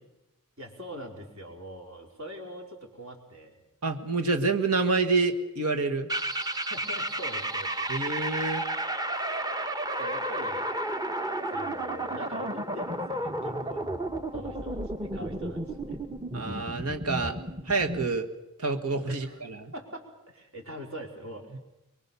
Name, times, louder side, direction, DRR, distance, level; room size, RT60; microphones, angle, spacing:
voice 1, 0.6-3.5 6.6-7.9 10.0-10.6 11.5-13.8 14.3-16.0 19.1-19.4 19.7-21.6, equal, 65° right, 2 dB, 4.6 m, -43 dB
voice 2, 3.8-6.1 7.9-8.6 16.3-17.4 17.7-18.3 18.6-19.7 21.5-21.6, right 3 dB, 80° right, 6 dB, 1.8 m, -27 dB
sound 1, 6.1-18.2, right 1 dB, 15° right, 1.0 m, -32 dB
24.0 x 22.5 x 7.1 m, 0.95 s
head